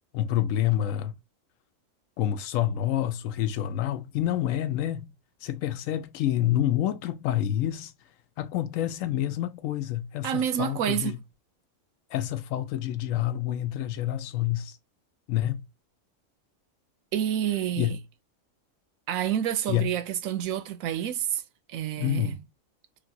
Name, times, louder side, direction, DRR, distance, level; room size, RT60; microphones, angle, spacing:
voice 1, 0.1-1.1 2.2-5.1 5.4-7.9 8.4-11.2 12.1-14.8 15.3-15.6 17.8-18.0 19.7-19.9 22.0-22.4, left 12 dB, 80° left, 0.9 m, -28 dB
voice 2, 10.2-11.2 17.1-18.0 19.1-21.4 21.7-22.4, right 10 dB, 85° right, 1.0 m, -28 dB
3.2 x 2.5 x 2.6 m
omnidirectional pair, 1.4 m